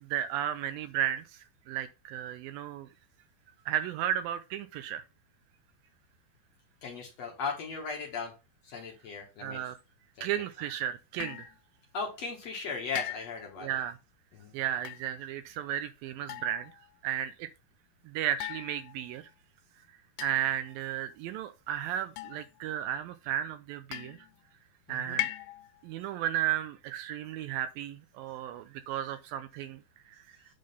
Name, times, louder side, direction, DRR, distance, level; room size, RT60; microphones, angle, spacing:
voice 1, 0.0-2.9 3.7-5.0 9.4-9.8 10.2-11.5 13.6-14.0 14.5-16.7 17.0-17.5 18.1-19.3 20.2-24.2 24.9-25.3 25.8-30.2, right 11 dB, 80° right, 2.2 m, -34 dB
voice 2, 6.8-8.3 8.6-9.6 10.2-10.3 11.9-13.7 14.3-14.5 24.9-25.2, left 4 dB, 60° left, 1.9 m, -37 dB
sound 1, 11.2-11.6 13.0-13.5 14.7-15.1 16.3-16.9 18.4-19.2 20.2-20.8 22.2-22.8 23.9-24.4 25.2-25.8, left 14 dB, 85° left, 2.5 m, -39 dB
8.5 x 3.8 x 5.3 m
omnidirectional pair, 4.4 m